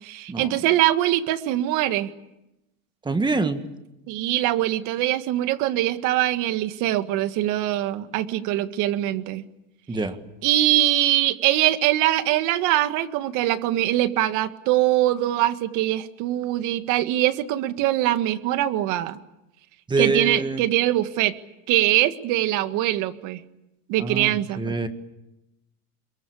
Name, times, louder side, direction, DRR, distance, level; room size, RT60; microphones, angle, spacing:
voice 1, 0.0-2.1 4.1-9.4 10.4-19.2 20.0-21.3 21.7-23.4 23.9-24.8, right 14 dB, 50° right, 10 dB, 1.9 m, -22 dB
voice 2, 3.0-3.6 9.9-10.2 19.9-20.6 24.0-24.9, right 3 dB, 10° right, 9 dB, 1.8 m, -25 dB
27.0 x 22.5 x 8.6 m, 0.91 s
supercardioid pair, 140°, 40 cm